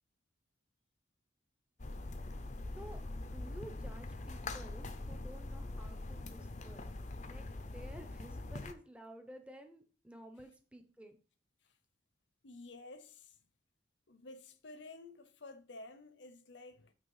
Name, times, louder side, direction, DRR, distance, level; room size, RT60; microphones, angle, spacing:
sound 1, 1.8-8.7, left 2 dB, 40° left, 0.6 m, -43 dB
voice 1, 2.8-6.9 7.3-11.2, right 1 dB, 5° right, 0.8 m, -53 dB
voice 2, 12.4-13.4 14.1-16.9, left 2 dB, 65° left, 0.9 m, -52 dB
9.0 x 3.5 x 5.6 m
head